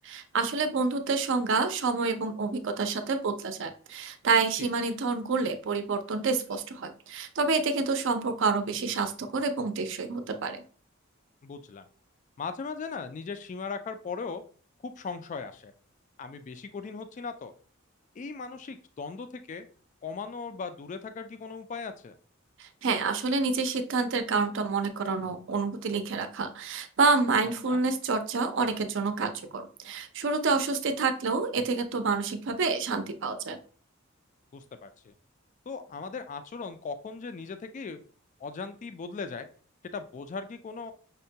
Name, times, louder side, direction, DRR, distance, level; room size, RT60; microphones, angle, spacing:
voice 1, 0.0-10.6 22.6-33.6, right 4 dB, 65° right, 8 dB, 0.5 m, -28 dB
voice 2, 11.4-11.9 12.4-14.4 14.8-15.7 16.2-17.5 18.2-19.7 20.0-22.1 27.7-27.8 34.5-35.1 35.7-38.0 38.4-39.5 39.9-40.9, left 4 dB, 35° left, 9 dB, 0.3 m, -38 dB
5.4 x 2.2 x 2.7 m, 0.42 s
head